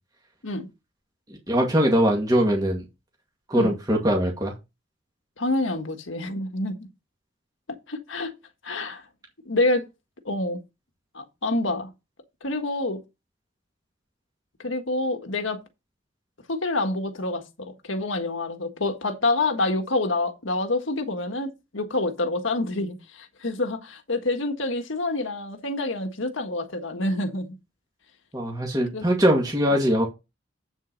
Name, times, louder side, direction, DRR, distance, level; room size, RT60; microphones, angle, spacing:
voice 1, 1.5-2.8 3.5-4.5 28.3-30.1, equal, 20° right, 2.2 m, -21 dB
voice 2, 5.4-6.9 7.7-8.3 8.6-9.0 9.4-9.8 10.2-10.6 11.1-11.9 12.4-13.0 14.6-15.6 16.5-27.5 28.9-29.1, left 2 dB, 85° left, 1.6 m, -27 dB
8.4 x 7.5 x 4.0 m
head